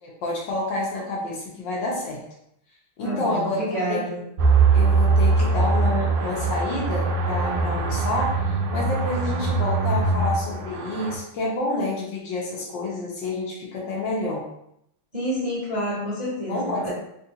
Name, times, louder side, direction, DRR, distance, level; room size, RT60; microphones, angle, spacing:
voice 1, 0.0-2.2 3.0-3.6 3.9-4.0 4.7-14.4 16.5-16.9, left 2 dB, 70° left, -4 dB, 1.3 m, -28 dB
voice 2, 3.0-4.2 15.1-16.9, equal, 35° right, -10 dB, 0.6 m, -28 dB
sound 1, 4.4-11.2, right 4 dB, 75° right, 1.1 m, -22 dB
3.6 x 2.4 x 2.7 m, 0.75 s
omnidirectional pair, 2.3 m